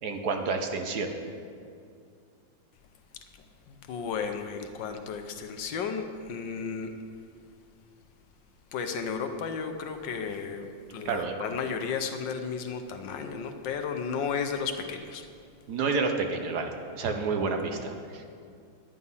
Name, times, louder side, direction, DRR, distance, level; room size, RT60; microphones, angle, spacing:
voice 1, 0.0-1.1 11.0-11.5 15.7-18.2, right 4 dB, 60° right, 4 dB, 1.3 m, -29 dB
voice 2, 3.9-6.9 8.7-10.7 10.9-15.2, left 6 dB, 70° left, 6 dB, 1.4 m, -33 dB
10.5 x 9.9 x 5.5 m, 2.3 s
omnidirectional pair, 2.2 m